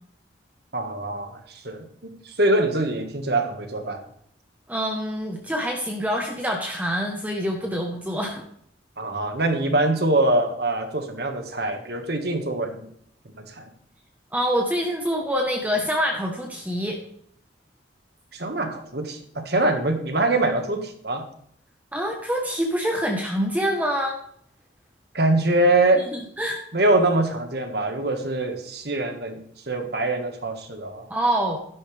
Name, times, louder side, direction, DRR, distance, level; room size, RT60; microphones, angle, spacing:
voice 1, 0.7-4.0 9.0-12.9 13.2-13.7 18.3-21.2 25.1-26.0 26.7-31.1, right 2 dB, 60° right, 5 dB, 1.7 m, -24 dB
voice 2, 4.7-8.4 14.3-17.0 21.9-24.2 26.0-26.6 31.1-31.6, equal, 10° right, 1 dB, 1.1 m, -26 dB
12.5 x 11.0 x 3.4 m, 0.66 s
head